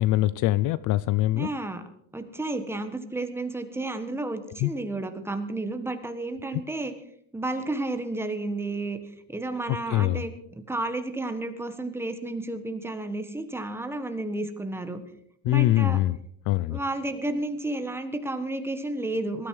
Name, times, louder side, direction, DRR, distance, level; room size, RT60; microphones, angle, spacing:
voice 1, 0.0-1.5 4.6-4.7 9.9-10.2 15.4-16.2 16.5-16.8, left 16 dB, 50° left, 18 dB, 0.5 m, -23 dB
voice 2, 1.3-1.8 2.1-6.9 7.3-9.0 9.3-15.0 15.4-16.0 16.7-19.5, right 2 dB, 5° right, 7 dB, 1.3 m, -32 dB
19.5 x 13.0 x 4.7 m, 0.69 s
cardioid pair, 155°, 39 cm